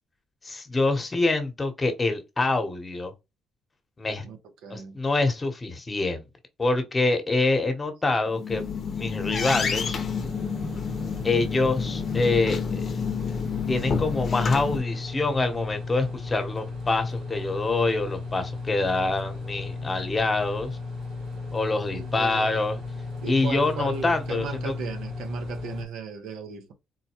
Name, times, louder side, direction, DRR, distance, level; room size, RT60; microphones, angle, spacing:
voice 1, 0.4-3.1 4.0-4.3 4.7-6.2 6.6-8.6 8.9-10.0 11.2-13.0 13.7-20.8 21.5-22.8 23.3-24.7, left 3 dB, 25° left, 1.0 m, -25 dB
voice 2, 4.6-5.0 21.9-22.6 23.2-26.7, right 5 dB, 85° right, 0.8 m, -36 dB
sound 1, 8.3-14.8, left 6 dB, 45° left, 0.7 m, -30 dB
sound 2, 9.3-25.9, left 3 dB, 70° right, 1.6 m, -35 dB
3.9 x 2.2 x 2.9 m
cardioid pair, 90°, 0 cm